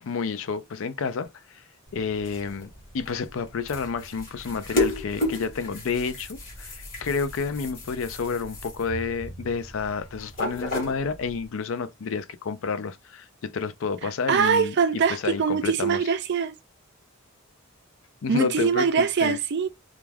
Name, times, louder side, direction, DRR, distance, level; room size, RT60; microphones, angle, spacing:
voice 1, 0.0-1.6 1.9-2.7 2.9-16.0 18.2-19.4, left 5 dB, 65° left, 0.4 m, -30 dB
sound 1, 1.9-11.5, left 1 dB, 45° left, 1.4 m, -33 dB
voice 2, 14.3-16.6 18.3-19.7, right 6 dB, 50° right, 0.4 m, -23 dB
2.4 x 2.2 x 3.2 m
head